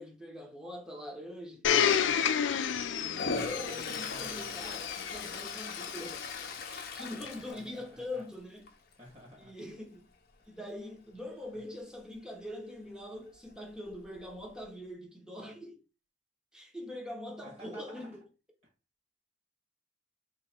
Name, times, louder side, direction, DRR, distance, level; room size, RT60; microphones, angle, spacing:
voice 1, 0.0-2.0 2.9-6.4 6.7-8.7 9.4-10.1 10.5-15.8 16.5-18.2, left 1 dB, 5° right, 0.9 m, -43 dB
Domestic sounds home sounds, 1.6-6.5 7.3-7.4, left 8 dB, 85° left, 0.4 m, -31 dB
Toilet flush, 3.1-8.3 8.7-9.0 13.5-13.6 13.9-14.6, left 4 dB, 55° left, 0.7 m, -39 dB
voice 2, 7.3-8.2 9.0-9.5 10.4-10.6 11.5-11.6 17.4-18.1, equal, 35° right, 1.6 m, -52 dB
3.1 x 3.0 x 4.3 m
head